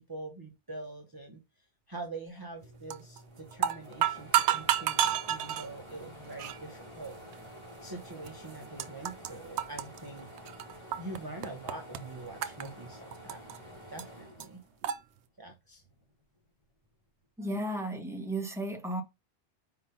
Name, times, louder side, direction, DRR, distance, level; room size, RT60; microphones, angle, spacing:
voice 1, 0.0-1.4 1.9-7.1 7.8-10.3 11.0-13.4 13.9-14.6 15.4-15.8 17.4-17.6, right 2 dB, 20° right, 0.9 m, -44 dB
sound 1, 2.6-15.2 15.6-16.8, equal, 25° left, 2.6 m, -50 dB
sound 2, 2.9-3.2 3.5-5.7 6.4-6.6 7.3-7.4 8.3-8.4 8.5-9.3 9.6-11.2 11.4-12.0 12.4-13.6 14.0-14.1 14.4-14.5 14.8-15.0, right 11 dB, 75° right, 0.9 m, -29 dB
voice 2, 17.4-19.0, right 1 dB, 5° right, 1.2 m, -34 dB
5.0 x 3.9 x 5.5 m
omnidirectional pair, 1.2 m